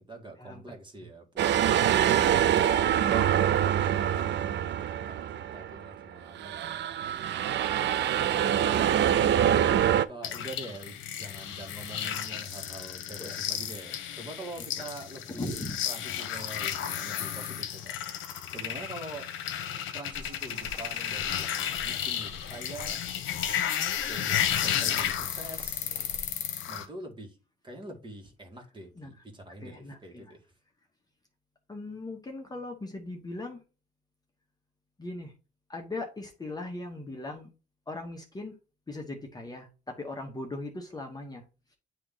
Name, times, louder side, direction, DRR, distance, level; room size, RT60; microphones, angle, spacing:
voice 1, 0.1-1.5 4.0-6.9 9.2-15.6 15.9-18.2 18.5-19.3 19.9-23.0 24.1-26.0 26.7-27.4 27.6-30.4, right 2 dB, 25° right, 2 dB, 1.8 m, -45 dB
sound 1, 1.4-5.9 6.3-10.0, right 10 dB, 65° right, 0.5 m, -25 dB
voice 2, 8.2-8.6 13.2-13.4 14.6-14.7 15.3-15.8 29.0-29.1 29.6-30.3 31.7-33.6 35.0-35.3 35.7-37.5 37.9-38.6 38.9-41.4, left 2 dB, 20° left, 2 dB, 1.1 m, -39 dB
sound 2, 10.2-26.8, left 10 dB, 80° left, 0.9 m, -33 dB
sound 3, 20.1-26.3, left 3 dB, 55° left, 1.4 m, -49 dB
8.8 x 3.0 x 3.9 m, 0.32 s
cardioid pair, 90°, 20 cm